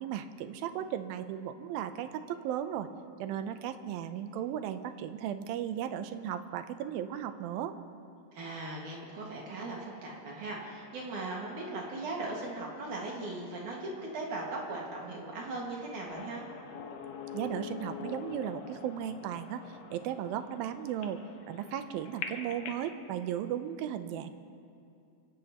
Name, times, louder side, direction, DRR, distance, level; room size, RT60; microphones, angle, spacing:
voice 1, 0.0-2.9 3.2-7.7 17.3-21.2 21.5-24.3, right 10 dB, 85° right, 10 dB, 2.5 m, -36 dB
voice 2, 8.3-16.4, right 2 dB, 65° right, -3 dB, 3.3 m, -38 dB
sound 1, 16.1-22.9, left 6 dB, 70° left, 2.6 m, -44 dB
27.0 x 16.5 x 3.0 m, 2.5 s
omnidirectional pair, 4.1 m